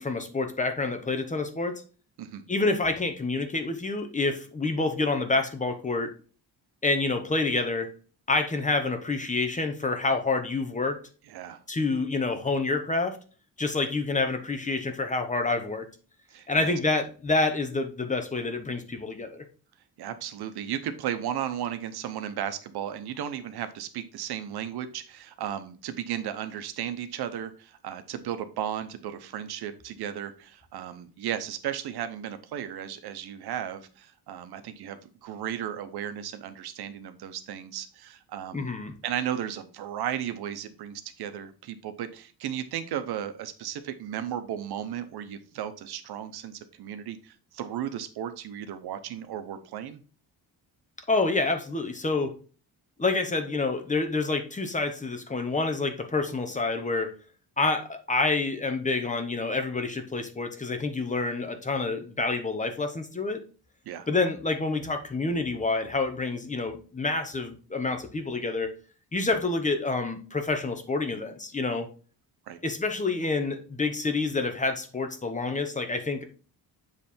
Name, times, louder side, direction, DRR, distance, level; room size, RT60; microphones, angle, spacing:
voice 1, 0.0-1.8 2.5-6.1 6.8-7.9 8.3-11.0 11.7-13.2 13.6-15.9 16.5-19.4 38.5-38.9 51.1-52.3 53.0-57.1 57.6-63.4 64.1-68.7 69.1-71.9 72.6-76.2, left 3 dB, 20° left, 6 dB, 0.8 m, -28 dB
voice 2, 11.3-11.6 16.3-16.7 20.0-38.7 39.0-50.0 63.9-64.1 72.5-72.6, right 10 dB, 85° right, 10 dB, 0.8 m, -35 dB
7.3 x 3.3 x 4.2 m, 0.38 s
cardioid pair, 130°, 38 cm